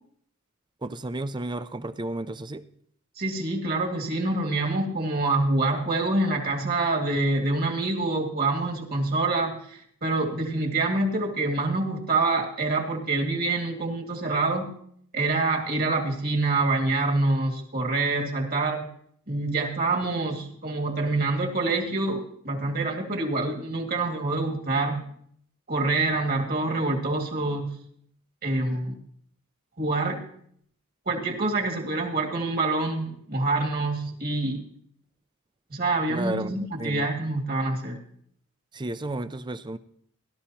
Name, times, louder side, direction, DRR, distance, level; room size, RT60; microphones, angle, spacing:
voice 1, 0.8-2.6 36.1-37.1 38.7-39.8, right 2 dB, 20° right, 13 dB, 0.5 m, -32 dB
voice 2, 3.2-14.7 15.1-18.9 19.3-25.0 25.7-27.8 28.4-29.0 29.8-30.2 31.1-34.6 35.7-38.0, right 2 dB, 45° right, 1 dB, 2.2 m, -26 dB
17.5 x 12.5 x 2.9 m, 0.66 s
head